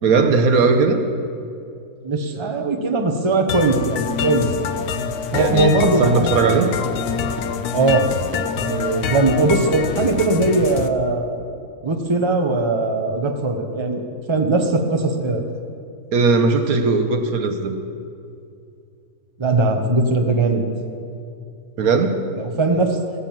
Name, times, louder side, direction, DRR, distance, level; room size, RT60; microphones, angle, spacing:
voice 1, 0.0-1.1 5.3-6.7 7.4-7.5 16.1-17.8 21.8-22.2, right 4 dB, 75° right, 7 dB, 1.4 m, -18 dB
voice 2, 2.0-4.5 5.3-6.3 7.7-8.1 8.6-11.4 11.8-14.0 14.3-15.4 19.4-20.6 22.4-23.0, right 2 dB, 20° right, 4 dB, 0.9 m, -19 dB
sound 1, 3.5-10.9, left 7 dB, 90° left, 1.2 m, -26 dB
17.0 x 7.6 x 7.4 m, 2.5 s
omnidirectional pair, 1.6 m